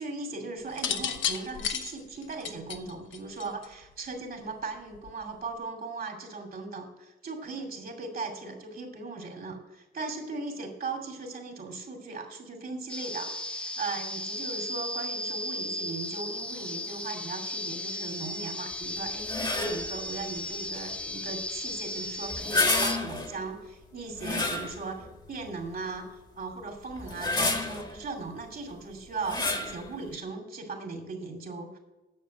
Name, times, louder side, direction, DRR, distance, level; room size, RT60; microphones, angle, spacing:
voice 1, 0.0-31.8, right 3 dB, 50° right, 3 dB, 2.5 m, -38 dB
sound 1, 0.7-3.8 4.9-5.3, left 8 dB, 85° left, 0.9 m, -32 dB
sound 2, 12.9-23.0, left 1 dB, 5° left, 0.6 m, -36 dB
sound 3, 19.2-19.9 22.3-23.4 24.2-25.1 25.6-25.7 27.0-27.9 29.2-29.8, left 2 dB, 20° left, 1.4 m, -29 dB
9.5 x 7.0 x 6.4 m, 1.1 s
cardioid pair, 120°, 19 cm